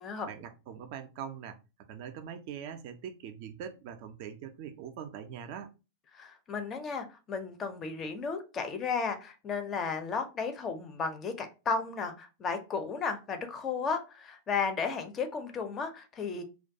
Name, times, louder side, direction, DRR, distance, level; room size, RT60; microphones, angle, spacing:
voice 1, 0.2-1.6 1.9-5.7, right 8 dB, 45° right, 0.3 m, -42 dB
voice 2, 6.1-16.4, left 5 dB, 25° left, 0.4 m, -34 dB
2.3 x 2.2 x 2.6 m
figure-of-eight pair, 90°, 0 cm